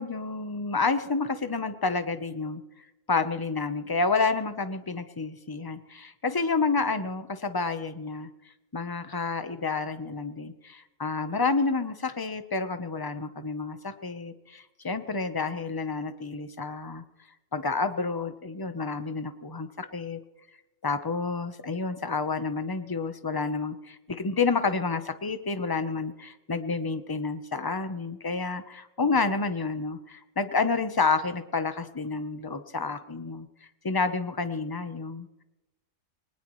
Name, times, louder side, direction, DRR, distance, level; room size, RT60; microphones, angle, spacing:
voice 1, 0.0-2.6 3.1-8.3 8.7-17.0 17.5-20.2 20.8-33.5 33.8-35.4, left 4 dB, 20° left, 10 dB, 0.9 m, -29 dB
22.5 x 20.0 x 3.2 m, 1.0 s
omnidirectional pair, 1.2 m